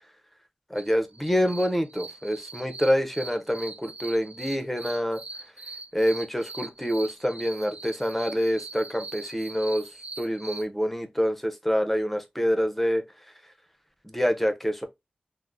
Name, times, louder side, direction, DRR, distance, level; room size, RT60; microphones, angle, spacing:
voice 1, 0.7-5.2 5.9-9.8 10.2-13.0 14.0-14.9, equal, 5° left, 0.6 m, -26 dB
sound 1, 0.8-10.6, right 3 dB, 55° right, 0.3 m, -41 dB
3.5 x 2.0 x 2.4 m
wide cardioid pair, 70°, 3 cm